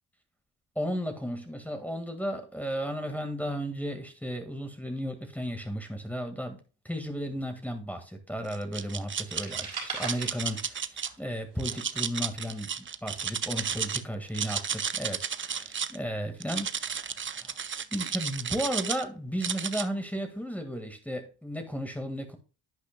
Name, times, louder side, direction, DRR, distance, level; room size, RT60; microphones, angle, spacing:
voice 1, 0.8-10.9 11.2-17.6 17.9-22.4, equal, 5° left, 1.7 m, -34 dB
sound 1, 8.5-9.6 10.0-11.1 11.6-14.0 14.3-16.0 16.4-19.0 19.4-19.9, right 7 dB, 25° right, 0.5 m, -33 dB
sound 2, 9.3-11.3 11.6-13.8, right 5 dB, 60° right, 4.1 m, -40 dB
11.0 x 8.3 x 2.2 m
cardioid pair, 65°, 44 cm